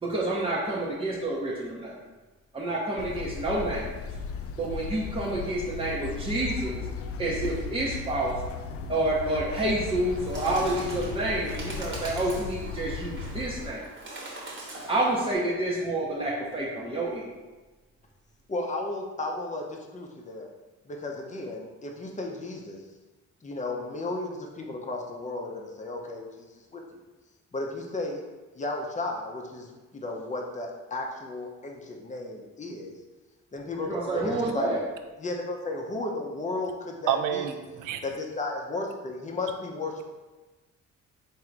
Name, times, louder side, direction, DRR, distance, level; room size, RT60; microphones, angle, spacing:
voice 1, 0.0-1.9 2.5-3.8 4.6-6.8 7.2-8.3 8.9-13.8 14.9-17.3 33.8-34.8, right 1 dB, 20° right, -7 dB, 0.8 m, -28 dB
sound 1, 3.0-13.7, left 4 dB, 50° left, 0.4 m, -36 dB
Bird, 9.8-15.4, right 2 dB, 40° right, 1.3 m, -42 dB
voice 2, 18.5-20.5 20.8-22.8 23.4-27.0 27.5-28.2 28.6-33.0 33.5-34.7 35.2-37.6 38.0-40.0, left 2 dB, 25° left, 0 dB, 0.7 m, -34 dB
voice 3, 37.1-38.0, right 10 dB, 85° right, 8 dB, 0.5 m, -29 dB
3.7 x 2.7 x 4.5 m, 1.2 s
cardioid pair, 90°, 30 cm